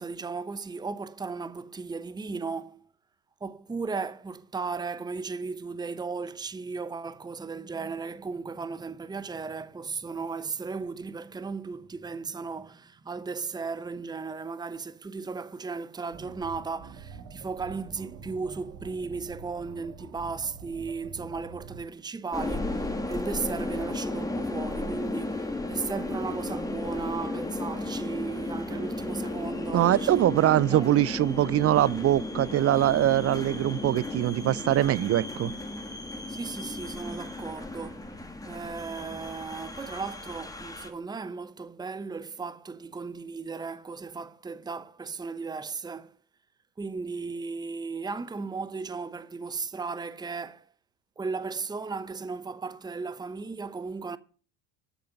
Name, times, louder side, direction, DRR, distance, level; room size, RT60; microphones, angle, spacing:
voice 1, 0.0-2.9 3.4-30.1 30.7-30.9 36.3-38.1 38.4-46.1 46.8-50.6 51.2-54.2, right 4 dB, 10° right, 0.8 m, -36 dB
sound 1, 16.1-21.8, right 5 dB, 80° right, 2.5 m, -46 dB
sound 2, 22.3-40.9, left 2 dB, 10° left, 2.3 m, -34 dB
voice 2, 29.7-35.5, right 13 dB, 35° right, 0.5 m, -23 dB
14.0 x 6.8 x 6.5 m
hypercardioid pair, 75°, 44 cm